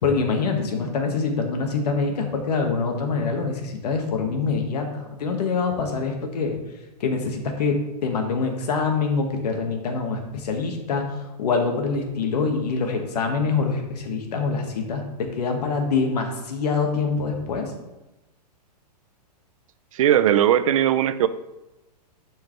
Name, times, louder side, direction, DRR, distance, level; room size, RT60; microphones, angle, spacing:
voice 1, 0.0-6.6 7.0-17.7, left 4 dB, 70° left, 3 dB, 1.7 m, -25 dB
voice 2, 19.9-21.3, right 11 dB, 55° right, 13 dB, 0.5 m, -19 dB
11.0 x 4.8 x 3.2 m, 1.0 s
hypercardioid pair, 155°, 21 cm